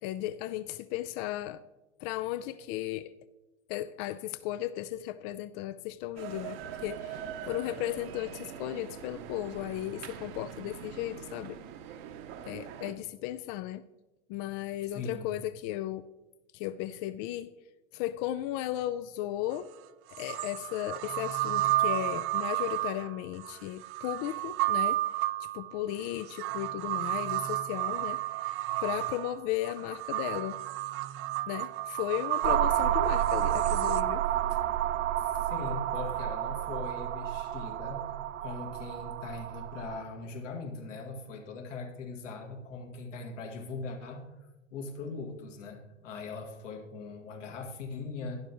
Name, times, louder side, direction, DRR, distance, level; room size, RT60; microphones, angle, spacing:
voice 1, 0.0-1.6 2.0-3.1 3.7-11.6 12.5-13.8 14.3-16.0 16.5-17.5 17.9-19.7 20.1-28.2 28.8-30.5 31.5-34.2, left 14 dB, 45° left, 14 dB, 0.4 m, -35 dB
sound 1, 6.2-12.9, right 8 dB, 55° right, 1.0 m, -43 dB
voice 2, 14.9-15.3 35.3-38.1 38.4-44.2 44.7-48.4, left 3 dB, 75° left, 1 dB, 2.1 m, -40 dB
sound 2, 19.5-19.6 20.1-34.0, right 16 dB, 40° right, 0.5 m, -32 dB
sound 3, 32.4-40.0, right 12 dB, 75° right, 0.7 m, -30 dB
12.0 x 11.0 x 3.0 m, 1.1 s
hypercardioid pair, 95°, 37 cm